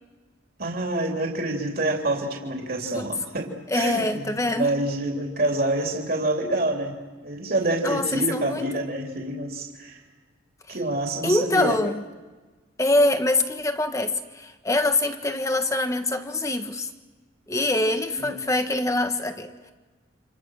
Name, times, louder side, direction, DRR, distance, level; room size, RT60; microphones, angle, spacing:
voice 1, 0.6-7.0 7.2-10.0 10.7-11.8 18.2-18.5, right 2 dB, 50° right, 3.2 m, -27 dB
voice 2, 3.7-4.7 7.8-8.8 10.7-10.8 11.2-12.0 12.8-16.9 17.5-19.7, left 2 dB, 15° left, 1.4 m, -24 dB
29.5 x 27.5 x 6.4 m
head